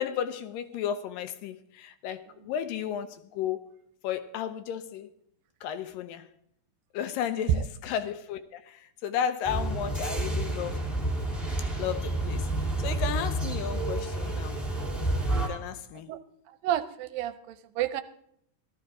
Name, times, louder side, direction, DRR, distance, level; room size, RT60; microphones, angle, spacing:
voice 1, 0.0-3.6 4.0-5.1 5.6-6.3 6.9-10.8 11.8-12.5 12.8-14.6 15.5-16.1, left 9 dB, 80° left, 2.3 m, -33 dB
sound 1, 9.4-15.5, right 2 dB, ahead, 1.1 m, -29 dB
voice 2, 16.6-18.0, right 10 dB, 80° right, 2.3 m, -29 dB
15.5 x 13.0 x 3.7 m
omnidirectional pair, 4.2 m